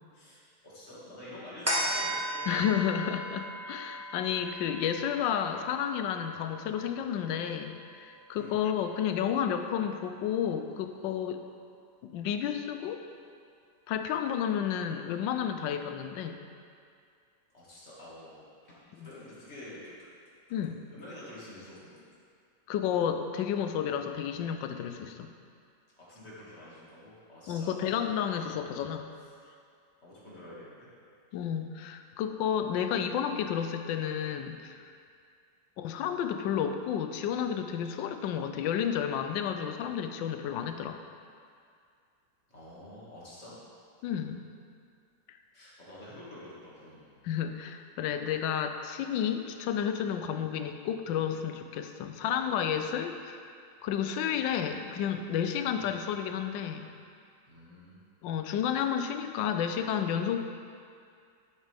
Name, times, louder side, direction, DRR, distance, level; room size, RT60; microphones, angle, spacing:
voice 1, 0.1-2.6 8.3-8.7 17.5-20.1 20.9-22.0 26.0-27.9 30.0-31.0 42.5-43.6 45.5-47.1 55.8-56.0 57.4-58.0, left 1 dB, 35° left, -8 dB, 2.3 m, -48 dB
sound 1, 1.7-8.4 8.9-9.0, equal, 10° right, 1.0 m, -37 dB
voice 2, 2.5-11.4 12.1-13.0 13.9-16.4 19.0-19.1 20.5-20.8 22.7-25.3 27.5-29.1 31.3-34.9 35.8-41.0 44.0-44.5 45.3-45.4 47.2-53.4 53.8-56.9 58.2-60.4, left 8 dB, 90° left, 7 dB, 1.3 m, -31 dB
10.5 x 7.5 x 3.4 m, 2.3 s
omnidirectional pair, 1.9 m